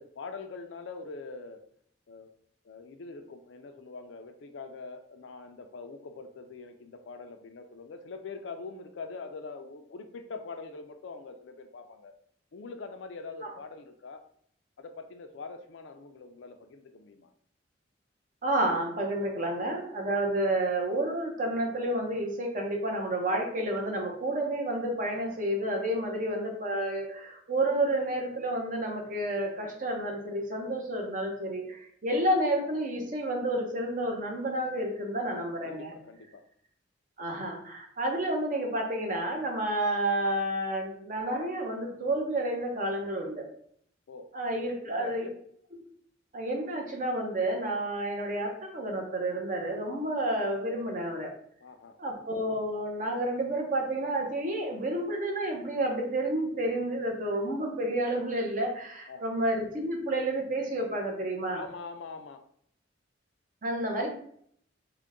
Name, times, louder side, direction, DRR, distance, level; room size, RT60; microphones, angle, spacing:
voice 1, 0.0-1.6 2.1-2.3 2.6-12.1 12.5-14.2 14.8-17.3 35.6-36.4 44.1-44.3 44.8-45.3 51.6-52.0 59.1-59.2 61.5-62.4, left 4 dB, 75° left, 7 dB, 0.4 m, -43 dB
voice 2, 18.4-35.9 37.2-43.5 44.3-45.3 46.3-51.3 52.0-61.6 63.6-64.1, right 1 dB, 45° right, 1 dB, 0.8 m, -30 dB
3.8 x 2.2 x 3.5 m, 0.65 s
head